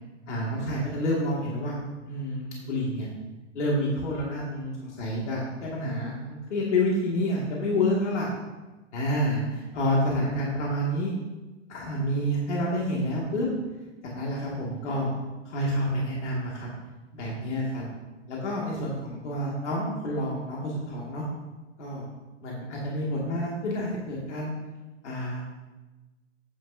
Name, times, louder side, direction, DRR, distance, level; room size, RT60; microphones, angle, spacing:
voice 1, 0.3-1.8 2.1-3.1 3.5-8.3 8.9-11.1 11.7-13.5 14.0-15.1 15.5-16.7 17.1-17.8 18.3-21.2 21.8-22.1 22.4-24.5 25.0-25.4, left 1 dB, 70° left, -4 dB, 2.3 m, -28 dB
9.5 x 8.8 x 2.7 m, 1.1 s
hypercardioid pair, 170°, 36 cm